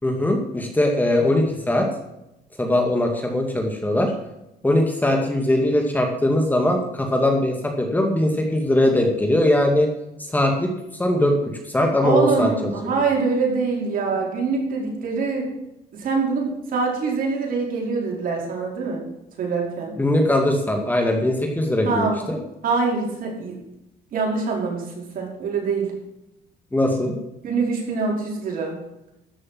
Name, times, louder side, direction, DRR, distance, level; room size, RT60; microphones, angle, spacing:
voice 1, 0.0-1.9 2.6-4.1 4.6-9.9 10.2-11.4 11.7-12.7 20.0-22.4 26.7-27.1, left 1 dB, 10° left, 2 dB, 2.2 m, -20 dB
voice 2, 12.0-15.5 15.9-19.0 19.4-20.0 21.8-22.2 22.6-23.6 24.1-25.9 27.4-28.8, right 4 dB, 55° right, -1 dB, 5.0 m, -24 dB
13.5 x 6.4 x 7.6 m, 0.88 s
cardioid pair, 110°, 17 cm